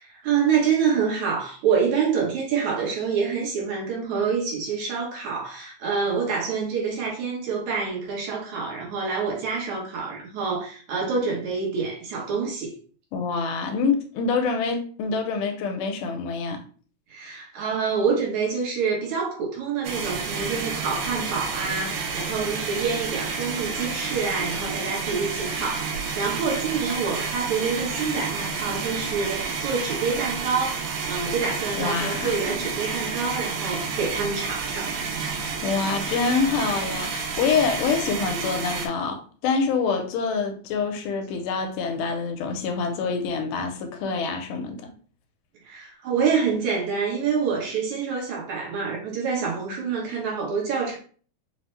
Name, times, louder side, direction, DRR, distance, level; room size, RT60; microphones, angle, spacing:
voice 1, 0.1-12.7 17.1-34.9 45.7-51.0, right 5 dB, 70° right, 2.1 m, -27 dB
voice 2, 13.1-16.6 31.7-32.6 35.6-44.8, left 5 dB, 85° left, 2.1 m, -26 dB
sound 1, 19.8-38.9, right 5 dB, 85° right, 2.1 m, -30 dB
5.5 x 2.0 x 3.1 m
omnidirectional pair, 3.7 m